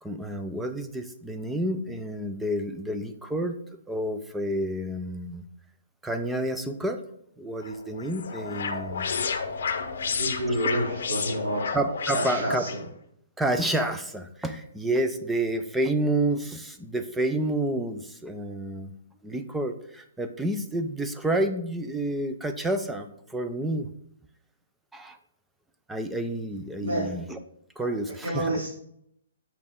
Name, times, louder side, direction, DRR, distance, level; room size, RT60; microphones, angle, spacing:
voice 1, 0.0-3.6 3.9-5.4 6.0-7.0 7.4-9.1 11.7-12.6 13.4-18.9 19.2-23.9 24.9-25.2 25.9-27.4 27.8-28.7, right 1 dB, 5° right, 7 dB, 0.3 m, -29 dB
sound 1, 7.6-12.8, left 5 dB, 50° left, 0.9 m, -31 dB
voice 2, 10.0-11.6 12.1-12.8 26.8-27.1 27.8-27.9 28.2-28.7, right 1 dB, 85° right, -8 dB, 3.4 m, -29 dB
8.4 x 5.8 x 3.6 m, 0.73 s
hypercardioid pair, 180°, 0 cm